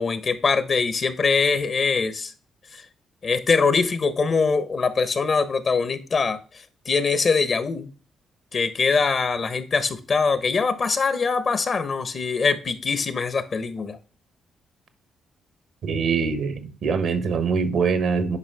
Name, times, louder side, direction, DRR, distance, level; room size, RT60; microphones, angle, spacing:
voice 1, 0.0-2.3 2.7-2.8 3.2-7.9 8.5-14.0, left 4 dB, 50° left, 1.2 m, -23 dB
voice 2, 15.8-18.4, right 5 dB, 65° right, 1.2 m, -23 dB
9.8 x 5.3 x 3.6 m
hypercardioid pair, 45°, 0 cm